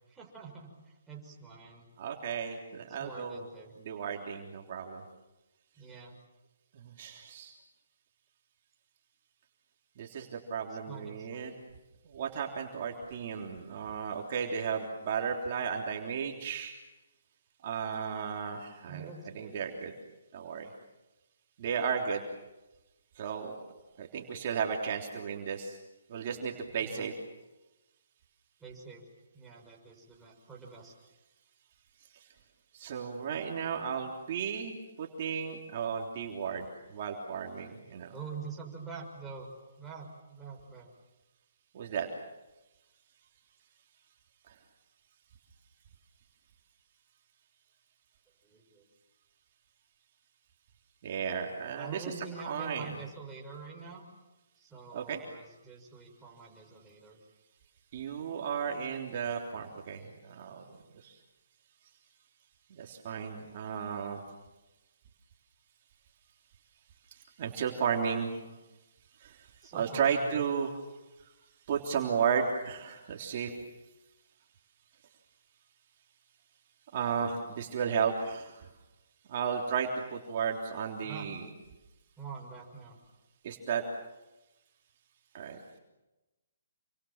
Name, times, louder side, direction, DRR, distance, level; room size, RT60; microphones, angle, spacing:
voice 1, 0.1-1.9 2.9-3.7 5.8-6.2 10.7-11.6 18.9-19.6 26.8-27.1 28.6-29.0 29.3-30.9 38.1-39.5 39.8-40.9 48.4-48.8 51.8-54.1 54.6-57.2 68.3-68.5 69.6-70.5 77.4-77.5 81.0-81.3 82.2-83.0, right 5 dB, 5° right, -3 dB, 6.2 m, -46 dB
voice 2, 2.0-3.4 3.8-5.0 6.8-7.6 10.0-11.5 12.0-16.7 17.6-19.9 20.3-20.7 21.6-22.2 23.2-23.6 24.0-25.8 26.1-27.1 32.7-38.1 41.7-42.1 44.5-44.6 51.0-52.1 52.4-52.9 54.9-55.2 57.9-60.8 61.0-61.2 62.7-64.2 67.4-68.3 69.2-69.5 69.7-70.7 71.7-73.5 76.9-78.7 79.3-81.5 83.4-83.8 85.3-85.6, right 7 dB, 45° right, 1 dB, 3.4 m, -34 dB
28.5 x 25.5 x 7.4 m, 1.1 s
hypercardioid pair, 155°, 0 cm